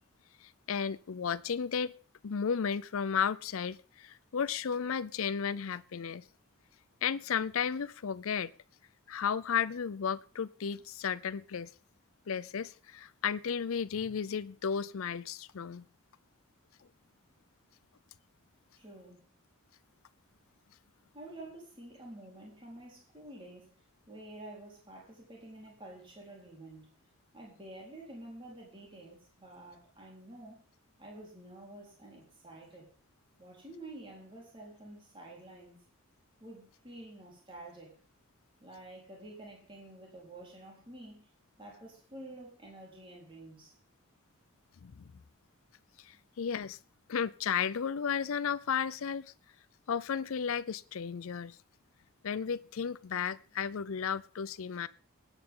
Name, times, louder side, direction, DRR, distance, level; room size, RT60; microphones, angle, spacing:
voice 1, 0.4-1.9 2.2-6.2 7.0-8.5 9.1-11.7 12.3-15.9 44.8-45.1 46.0-46.8 47.1-49.3 49.9-51.6 52.2-54.9, left 7 dB, 75° left, 17 dB, 0.5 m, -34 dB
voice 2, 18.8-19.2 21.1-26.9 27.3-30.6 31.0-32.9 33.4-35.8 36.4-38.0 38.6-41.3 41.6-43.7, right 1 dB, 25° right, -2 dB, 4.1 m, -49 dB
20.0 x 9.1 x 3.8 m, 0.39 s
head